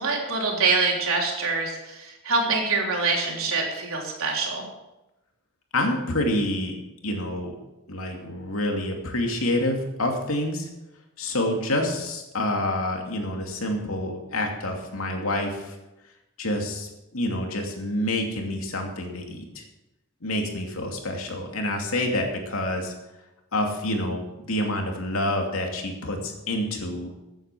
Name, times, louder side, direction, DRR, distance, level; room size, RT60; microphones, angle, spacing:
voice 1, 0.0-4.6, right 4 dB, 85° right, 0 dB, 3.4 m, -25 dB
voice 2, 5.7-6.7 7.0-7.6 7.9-10.7 11.2-15.8 16.4-19.6 20.2-22.9 23.5-27.1, left 1 dB, 85° left, 2 dB, 2.7 m, -27 dB
14.5 x 9.0 x 6.2 m, 0.97 s
head